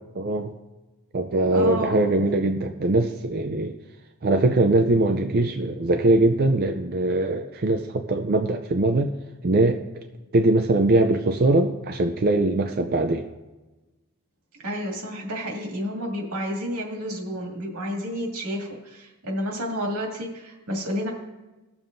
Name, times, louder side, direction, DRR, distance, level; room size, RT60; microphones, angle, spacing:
voice 1, 0.2-0.5 1.1-3.8 4.2-9.1 9.4-9.8 10.3-13.3, right 2 dB, 45° right, 5 dB, 0.5 m, -21 dB
voice 2, 1.5-2.1 14.6-21.1, equal, 85° right, 0 dB, 2.2 m, -30 dB
19.5 x 7.1 x 2.6 m, 1.1 s
head